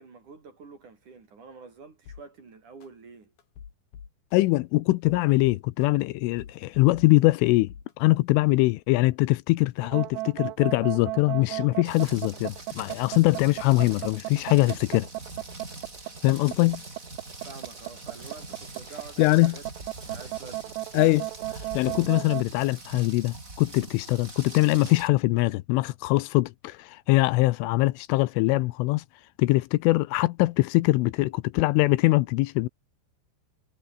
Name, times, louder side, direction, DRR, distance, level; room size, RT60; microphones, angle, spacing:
voice 1, 0.0-3.3 17.4-19.7 20.0-20.8, right 4 dB, 40° right, 5.7 m, -47 dB
sound 1, 2.1-2.2 2.8-2.9 3.4-4.4 4.9-6.0 6.4-7.4 7.7-7.9, left 7 dB, 50° left, 4.6 m, -45 dB
voice 2, 4.3-15.1 16.2-16.8 19.2-19.6 20.9-21.3 21.7-29.0 29.4-32.7, left 20 dB, 80° left, 3.2 m, -22 dB
sound 2, 9.8-22.4, right 20 dB, 85° right, 2.4 m, -34 dB
Rain, 11.8-25.1, right 2 dB, 15° right, 5.1 m, -43 dB
omnidirectional pair, 5.8 m